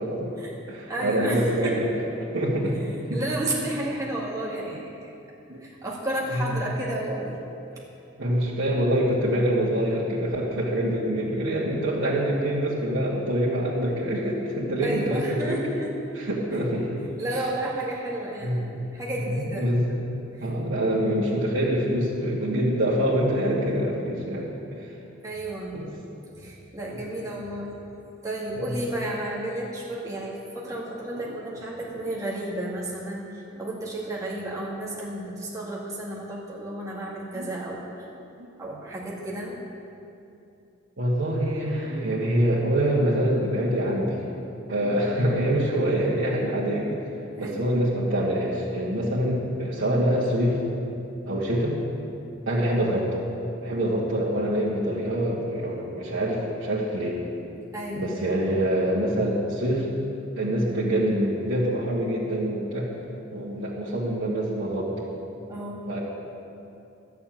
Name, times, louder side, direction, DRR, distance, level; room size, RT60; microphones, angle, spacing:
voice 1, 0.0-0.3 0.7-2.0 2.3-2.8 3.1-3.2 5.5-5.6 6.3-6.6 8.2-15.6 16.1-17.0 18.4-18.9 19.3-20.0 20.4-24.5 24.8-24.9 25.7-25.9 28.6-28.8 31.1-31.3 37.3-37.5 38.4-38.5 41.0-44.2 44.7-47.0 47.4-50.6 51.3-51.8 52.5-53.3 53.6-57.2 57.9-59.9 60.4-62.9 63.3-65.0 65.9-66.0, right 1 dB, 75° right, -8 dB, 1.9 m, -25 dB
voice 2, 0.9-1.8 3.1-4.8 5.6-7.5 11.2-11.3 14.8-16.0 16.5-16.6 17.2-18.6 18.9-19.8 25.2-25.9 26.3-27.7 28.2-38.1 38.6-39.6 47.4-47.6 52.5-52.6 57.7-58.1 65.5-65.9, right 1 dB, 15° right, -5 dB, 2.1 m, -32 dB
12.0 x 7.0 x 9.1 m, 2.7 s
head